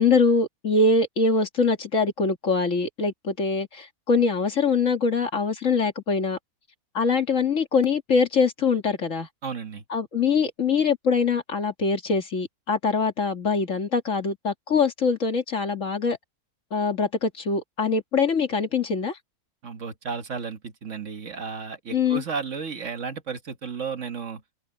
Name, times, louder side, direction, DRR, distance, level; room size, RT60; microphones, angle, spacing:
voice 1, 0.0-6.4 6.9-9.3 9.9-16.2 16.7-19.2 21.9-22.2, left 4 dB, 55° left, 2.3 m, -23 dB
voice 2, 9.4-9.8 19.6-24.4, right 5 dB, 55° right, 1.6 m, -33 dB
omnidirectional pair, 1.6 m